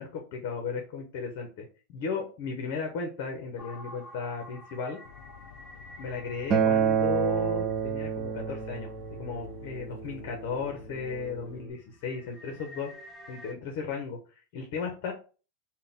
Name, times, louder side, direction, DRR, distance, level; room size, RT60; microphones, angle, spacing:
voice 1, 0.0-5.0 6.0-12.9 13.3-14.2 14.5-15.1, left 5 dB, 55° left, 3 dB, 0.8 m, -35 dB
sound 1, 3.6-9.4 9.9-10.0 10.5-10.8 11.1-13.5, left 1 dB, ahead, 0.7 m, -50 dB
sound 2, 5.0-11.7, left 7 dB, 80° left, 0.4 m, -47 dB
Acoustic guitar, 6.5-11.7, right 7 dB, 30° right, 0.4 m, -29 dB
3.7 x 2.2 x 3.9 m, 0.36 s
supercardioid pair, 160°, 0 cm